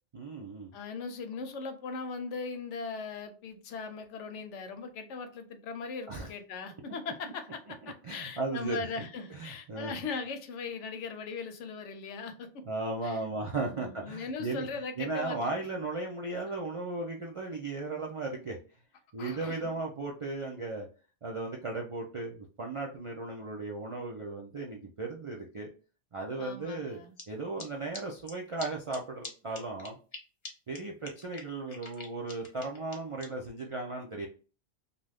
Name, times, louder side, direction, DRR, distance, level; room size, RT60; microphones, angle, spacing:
voice 1, 0.1-0.7 6.1-6.3 7.8-8.8 9.3-9.9 12.7-14.7 15.0-18.6 19.1-20.9 21.2-25.7 26.1-27.0 27.3-30.0 30.7-34.3, right 3 dB, 55° right, 0.3 m, -36 dB
voice 2, 0.7-12.6 13.0-13.2 13.5-15.4 19.2-19.7 26.4-27.2, left 4 dB, 80° left, 0.9 m, -39 dB
sound 1, 27.2-27.3 27.6-27.7 27.9-28.0 28.3-28.4 28.6-28.7 28.9-29.0 29.2-29.3 29.5-30.2 30.4-30.5 30.7-30.8 31.0-33.2, left 2 dB, 30° left, 0.7 m, -43 dB
2.6 x 2.3 x 3.3 m
omnidirectional pair, 1.2 m